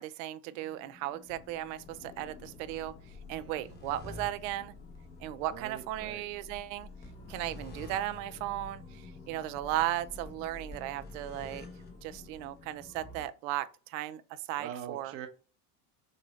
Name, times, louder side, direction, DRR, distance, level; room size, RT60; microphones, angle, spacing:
voice 1, 0.0-2.9 3.3-4.7 5.2-6.9 7.3-11.7 12.0-15.1, right 14 dB, 60° right, 0.5 m, -36 dB
sound 1, 0.6-13.3, left 3 dB, 20° left, 0.9 m, -49 dB
sound 2, 1.3-9.0 9.3-9.5 9.9-10.0, left 5 dB, 85° left, 1.5 m, -59 dB
voice 2, 3.3-3.8 5.5-6.2 14.6-15.3, right 9 dB, 30° right, 0.8 m, -43 dB
6.4 x 2.7 x 3.1 m
supercardioid pair, 155°, 45 cm